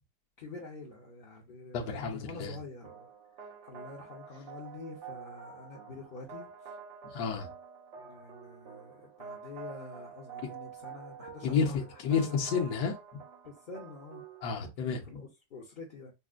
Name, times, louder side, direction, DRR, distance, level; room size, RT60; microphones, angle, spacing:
voice 1, 0.4-3.1 3.6-6.8 7.9-12.3 13.4-14.2 14.8-16.1, left 3 dB, 45° left, 0.6 m, -47 dB
voice 2, 1.7-2.6 7.1-7.5 11.4-13.0 14.4-15.0, left 5 dB, 70° left, 1.3 m, -30 dB
sound 1, 2.8-14.5, right 6 dB, 80° right, 1.5 m, -48 dB
5.5 x 2.1 x 2.4 m
omnidirectional pair, 1.8 m